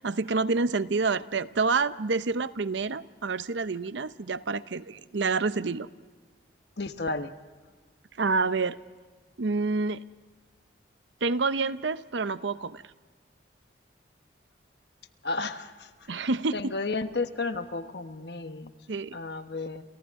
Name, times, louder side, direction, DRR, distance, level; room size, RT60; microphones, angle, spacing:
voice 1, 0.0-5.9 8.2-8.8 9.4-10.0 11.2-12.8 16.1-16.7 18.9-19.1, right 4 dB, 80° right, 14 dB, 0.7 m, -28 dB
voice 2, 6.8-7.3 15.2-16.3 16.5-18.7 19.1-19.8, left 3 dB, 65° left, 8 dB, 1.2 m, -33 dB
30.0 x 29.5 x 3.7 m, 1.4 s
head